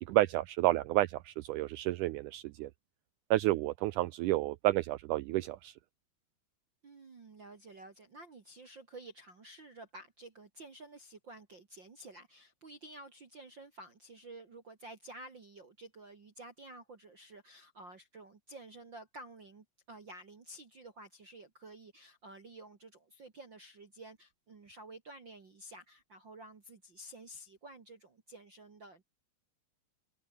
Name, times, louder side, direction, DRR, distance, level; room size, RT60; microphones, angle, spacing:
voice 1, 0.0-2.7 3.3-5.7, right 16 dB, 90° right, 1.8 m, -30 dB
voice 2, 6.8-29.0, right 2 dB, 35° right, 2.4 m, -51 dB
omnidirectional pair, 4.3 m